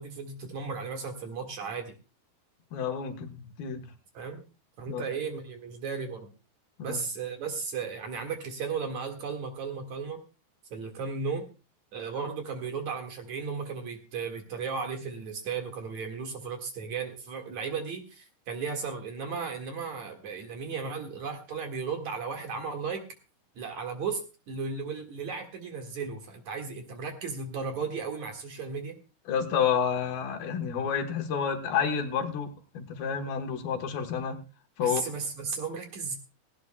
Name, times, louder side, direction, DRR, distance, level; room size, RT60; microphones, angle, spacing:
voice 1, 0.0-1.9 4.1-4.4 4.8-6.3 6.8-10.2 10.7-11.4 11.9-23.0 23.6-24.2 24.5-28.9 34.8-36.2, right 5 dB, 55° right, 4 dB, 2.8 m, -35 dB
voice 2, 2.7-3.8 4.9-5.0 6.8-7.0 29.3-34.4 34.8-35.0, left 7 dB, 70° left, 6 dB, 3.0 m, -30 dB
18.0 x 17.0 x 2.2 m, 0.32 s
omnidirectional pair, 4.5 m